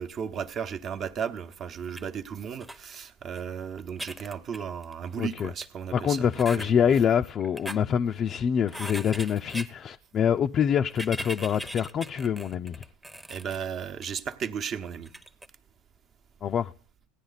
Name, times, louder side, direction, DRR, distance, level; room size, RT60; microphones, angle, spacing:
voice 1, 0.0-7.0 13.3-15.1, right 7 dB, 40° right, 1.0 m, -35 dB
sound 1, 1.9-2.0 2.6-2.8 3.4-3.5 3.8-5.1 5.6-5.7 6.3-6.7 7.4-7.8 8.7-9.7 10.8-13.6 14.0-14.1 15.1-15.5, right 1 dB, 5° right, 0.8 m, -39 dB
voice 2, 5.2-5.5 5.9-12.8 16.4-16.7, left 8 dB, 40° left, 0.5 m, -25 dB
16.5 x 9.9 x 4.0 m
hypercardioid pair, 85°, 0 cm